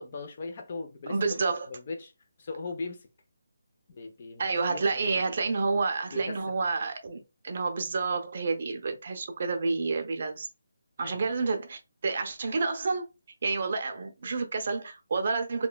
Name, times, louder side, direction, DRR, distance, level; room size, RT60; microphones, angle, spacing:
voice 1, 0.0-1.2 1.7-2.1 2.4-3.1 3.9-5.2 6.1-6.4 11.0-11.3, left 3 dB, 40° left, 0.5 m, -39 dB
voice 2, 1.1-1.7 4.4-10.5 11.0-13.1 13.4-15.7, right 4 dB, 45° right, 0.5 m, -29 dB
3.0 x 2.2 x 2.2 m
hypercardioid pair, 170°, 0 cm